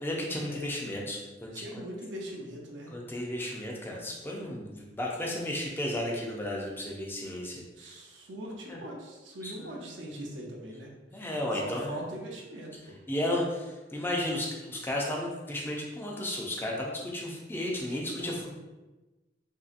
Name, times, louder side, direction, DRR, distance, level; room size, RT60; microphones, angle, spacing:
voice 1, 0.0-1.8 2.9-7.6 8.7-8.8 9.4-10.2 11.1-11.9 13.1-18.5, left 1 dB, 10° left, -2 dB, 0.5 m, -34 dB
voice 2, 1.5-2.9 7.8-10.9 11.2-11.3 11.5-13.0 17.9-18.5, right 1 dB, 75° right, -2 dB, 0.6 m, -41 dB
2.8 x 2.7 x 2.4 m, 1.1 s
head